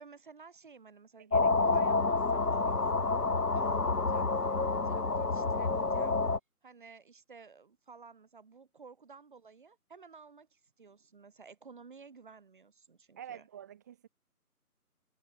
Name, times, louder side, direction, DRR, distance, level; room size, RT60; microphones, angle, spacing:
voice 1, 0.0-3.0 3.5-6.2 6.6-13.5, right 5 dB, 35° right, 5.3 m, -53 dB
voice 2, 1.2-1.7 13.2-14.1, right 10 dB, 10° right, 2.5 m, -48 dB
sound 1, 1.3-6.4, left 3 dB, 80° left, 1.4 m, -28 dB
figure-of-eight pair, 160°, 45 cm